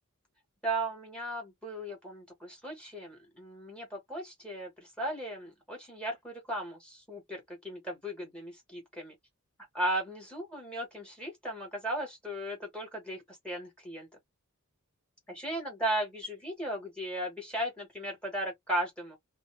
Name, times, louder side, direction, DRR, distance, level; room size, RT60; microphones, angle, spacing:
voice 1, 0.6-9.1 9.7-14.1 15.3-19.2, right 1 dB, 5° left, 1.1 m, -36 dB
2.6 x 2.1 x 3.0 m
head